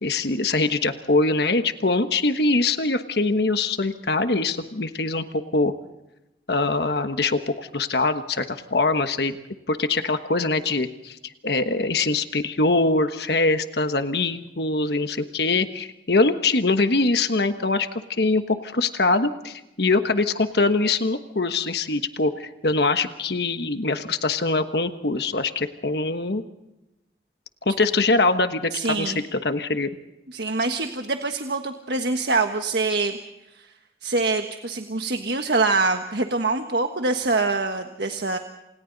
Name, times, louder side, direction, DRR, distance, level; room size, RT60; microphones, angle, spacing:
voice 1, 0.0-5.2 5.5-5.7 6.5-9.4 9.7-11.2 11.4-26.4 27.6-29.1 29.4-29.9, left 3 dB, 65° left, 8 dB, 1.3 m, -23 dB
voice 2, 28.7-29.2 30.3-33.2 33.5-33.7 34.0-38.4, right 3 dB, 70° right, 5 dB, 1.4 m, -24 dB
28.5 x 28.0 x 4.1 m, 0.95 s
head